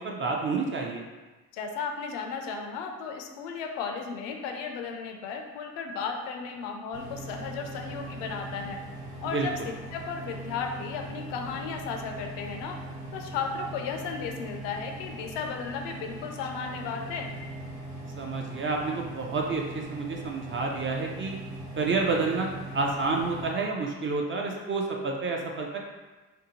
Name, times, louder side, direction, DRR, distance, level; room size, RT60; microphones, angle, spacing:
voice 1, 0.0-1.0 9.3-9.5 18.2-21.4 21.8-22.5 22.7-25.8, right 3 dB, 30° right, 0 dB, 0.3 m, -29 dB
voice 2, 1.5-8.8 9.2-9.6 9.9-12.8 13.1-17.3, left 5 dB, 70° left, 4 dB, 0.5 m, -35 dB
sound 1, 6.9-23.5, right 1 dB, 55° right, 0.9 m, -40 dB
2.7 x 2.1 x 2.8 m, 1.2 s
hypercardioid pair, 50°, 44 cm